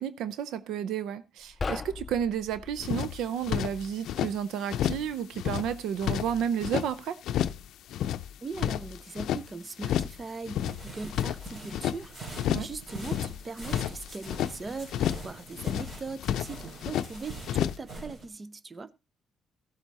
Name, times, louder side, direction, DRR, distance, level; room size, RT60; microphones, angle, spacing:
voice 1, 0.0-7.2 12.5-12.7, right 8 dB, 85° right, 0.6 m, -31 dB
sound 1, 1.4-3.1, left 4 dB, 30° left, 0.5 m, -37 dB
sound 2, 2.8-4.3 4.7-5.1 5.3-6.9 7.2-7.6 7.9-9.4 9.8-10.2 10.5-12.0 12.3-12.8 13.0-14.5 14.9-15.3 15.6-17.1 17.4-17.8, left 10 dB, 80° left, 0.5 m, -30 dB
voice 2, 8.4-18.9, right 4 dB, 30° right, 0.7 m, -40 dB
sound 3, 10.5-18.3, right 2 dB, 45° right, 4.8 m, -44 dB
15.0 x 8.1 x 4.1 m
cardioid pair, 90°, 0 cm